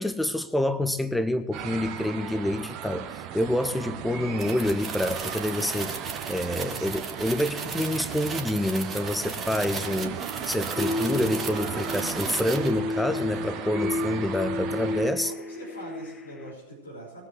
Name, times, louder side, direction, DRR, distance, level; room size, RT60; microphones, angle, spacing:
voice 1, 0.0-6.0 6.3-15.3, left 1 dB, 5° left, 11 dB, 0.8 m, -27 dB
sound 1, 1.5-15.1, right 9 dB, 40° right, 1.1 m, -36 dB
sound 2, 4.4-12.8, right 5 dB, 20° right, 1.5 m, -36 dB
sound 3, 10.8-16.5, left 3 dB, 20° left, 1.2 m, -32 dB
voice 2, 15.2-17.3, right 1 dB, 75° left, -1 dB, 5.4 m, -42 dB
20.0 x 7.8 x 7.5 m, 1.0 s
figure-of-eight pair, 90°, 0 cm